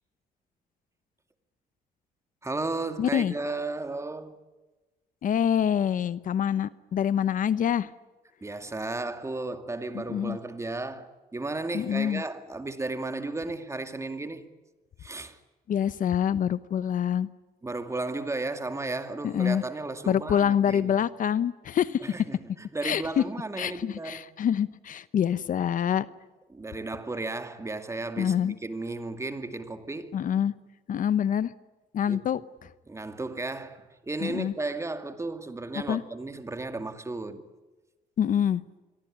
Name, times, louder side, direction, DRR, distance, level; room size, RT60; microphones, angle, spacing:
voice 1, 2.4-4.4 8.4-14.5 15.0-15.4 17.6-20.9 22.0-24.3 26.5-30.2 32.1-32.2 32.9-37.4, right 2 dB, 15° right, 2.3 m, -34 dB
voice 2, 3.0-3.3 5.2-7.9 9.9-10.4 11.7-12.2 15.7-17.3 19.2-19.6 20.1-22.0 22.8-23.2 23.6-26.0 28.2-28.5 30.1-30.5 30.9-31.5 31.9-32.4 34.2-34.5 35.9-36.0 38.2-38.6, left 9 dB, 55° left, 0.9 m, -26 dB
26.5 x 22.5 x 9.9 m
cardioid pair, 100°, 17 cm